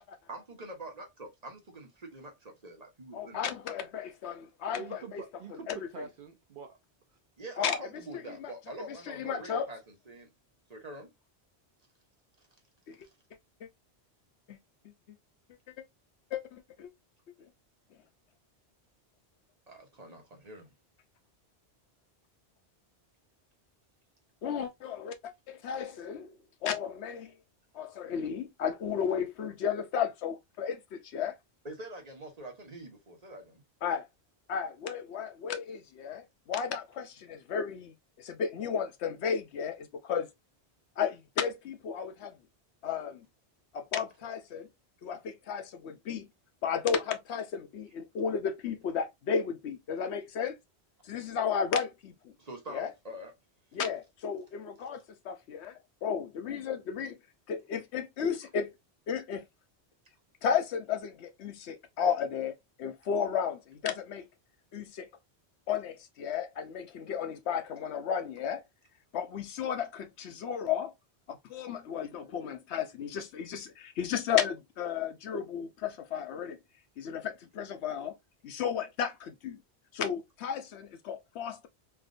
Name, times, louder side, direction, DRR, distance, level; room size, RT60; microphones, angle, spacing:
voice 1, 0.3-3.4 7.4-10.3 10.7-11.1 13.0-13.1 19.7-20.7 31.6-33.6 52.4-53.3, right 1 dB, 40° right, 1.0 m, -45 dB
voice 2, 3.1-5.2 5.7-5.8 7.6-7.8 8.1-8.5 9.1-9.7 12.9-13.0 13.6-13.7 14.5-14.6 16.3-16.9 24.4-26.3 26.6-27.3 27.7-31.4 33.8-34.1 34.5-40.3 41.0-42.3 42.8-43.3 43.7-44.7 45.0-46.3 46.6-50.6 51.0-52.3 52.7-52.9 53.7-57.2 57.5-58.7 59.1-59.5 60.4-62.5 62.8-64.3 64.7-65.1 65.7-68.6 69.1-70.9 71.3-76.6 77.0-78.2 78.4-79.6 79.9-81.7, left 7 dB, 80° left, 0.9 m, -33 dB
voice 3, 4.7-6.8, right 6 dB, 60° right, 0.7 m, -45 dB
3.4 x 2.4 x 2.5 m
omnidirectional pair, 1.1 m